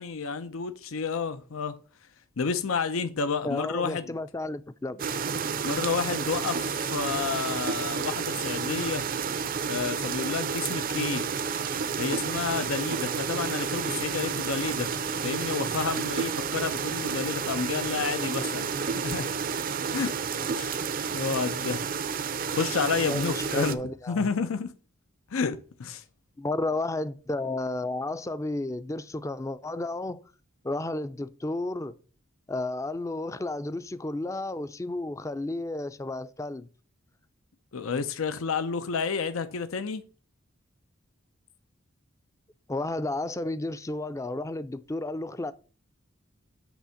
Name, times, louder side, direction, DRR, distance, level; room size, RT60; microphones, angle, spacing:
voice 1, 0.0-1.8 2.4-4.1 5.6-6.6 6.9-9.1 9.7-11.3 12.0-14.9 15.2-19.3 19.9-20.1 20.5-20.7 21.1-21.8 22.5-23.8 24.1-24.7 25.3-26.0 37.7-40.0, left 5 dB, 90° left, 0.6 m, -30 dB
voice 2, 3.4-5.0 23.1-24.3 26.4-30.2 30.6-32.0 32.5-36.7 42.7-45.5, left 2 dB, 15° left, 0.4 m, -32 dB
sound 1, 5.0-23.7, right 6 dB, 45° right, 0.5 m, -30 dB
8.1 x 3.4 x 6.3 m
head